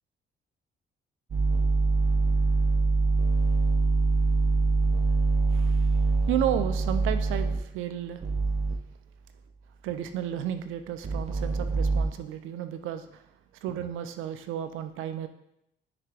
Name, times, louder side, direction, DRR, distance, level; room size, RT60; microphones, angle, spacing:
sound 1, 1.3-7.6 8.2-8.7 11.0-12.1, right 3 dB, 35° right, 0.8 m, -24 dB
voice 1, 5.5-8.2 9.8-13.3 13.6-15.3, right 10 dB, 90° right, 9 dB, 0.5 m, -33 dB
9.5 x 3.3 x 3.3 m, 0.79 s
cardioid pair, 90°, 20 cm